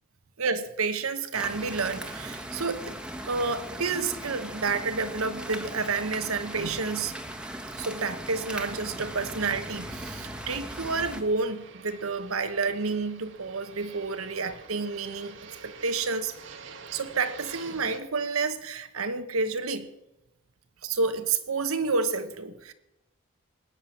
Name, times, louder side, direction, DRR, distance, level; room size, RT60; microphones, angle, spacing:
voice 1, 0.4-3.0 3.2-7.1 7.7-15.4 15.6-16.4 16.9-19.9 20.8-22.7, right 4 dB, 85° right, 12 dB, 1.2 m, -30 dB
sound 1, 1.3-11.2, right 1 dB, 5° right, 1.2 m, -38 dB
Fixed-wing aircraft airplane, 8.4-18.0, right 4 dB, 60° right, 1.4 m, -48 dB
19.5 x 9.6 x 7.3 m, 0.97 s
head